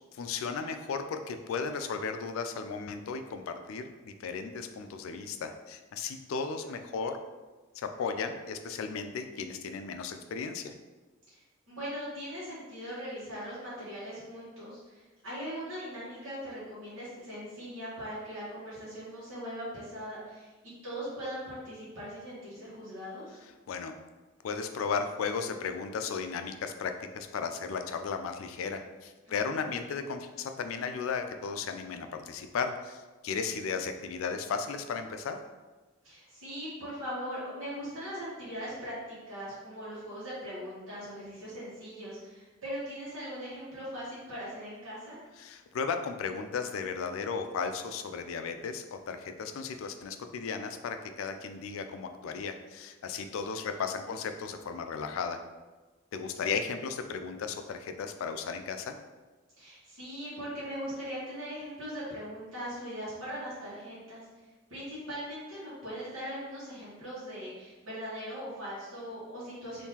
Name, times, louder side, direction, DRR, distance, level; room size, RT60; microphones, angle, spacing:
voice 1, 0.1-7.2 7.8-10.7 23.7-24.0 24.4-35.4 45.4-55.4 56.1-58.9, left 5 dB, 85° left, 7 dB, 0.3 m, -35 dB
voice 2, 6.6-7.0 11.3-20.5 20.8-23.4 29.2-29.7 36.0-45.2 54.1-54.2 59.6-64.2 64.7-69.9, equal, 85° right, -11 dB, 1.3 m, -40 dB
3.6 x 2.7 x 2.8 m, 1.2 s
head